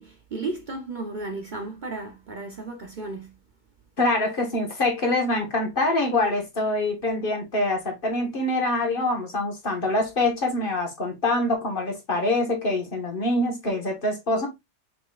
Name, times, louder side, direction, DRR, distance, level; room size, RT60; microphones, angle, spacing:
voice 1, 0.0-3.3, right 3 dB, 60° right, 0.5 m, -34 dB
voice 2, 4.0-14.5, left 2 dB, 35° left, 1.2 m, -25 dB
5.7 x 3.9 x 2.3 m
omnidirectional pair, 1.7 m